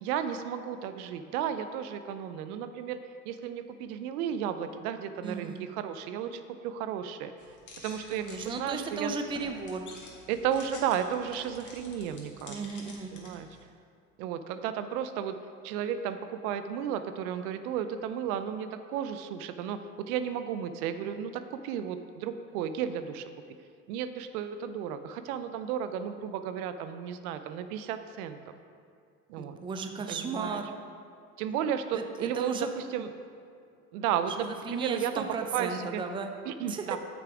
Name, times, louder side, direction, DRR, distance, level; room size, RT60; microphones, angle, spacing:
voice 1, 0.0-3.0 3.3-7.3 7.8-9.1 10.3-12.6 13.1-13.5 14.2-15.4 15.6-19.8 20.1-23.2 23.9-28.4 29.3-29.6 30.1-30.6 31.4-33.1 33.9-35.3 35.5-36.0 36.4-37.0, right 9 dB, 70° right, 10 dB, 0.7 m, -33 dB
voice 2, 5.2-5.7 8.1-9.9 12.5-13.2 29.4-30.7 31.9-32.7 34.4-36.3 36.7-36.9, right 4 dB, 10° right, 5 dB, 0.5 m, -35 dB
sound 1, 7.4-13.6, left 3 dB, 40° left, 2.0 m, -49 dB
8.7 x 6.0 x 4.8 m, 2.3 s
hypercardioid pair, 85°, 46 cm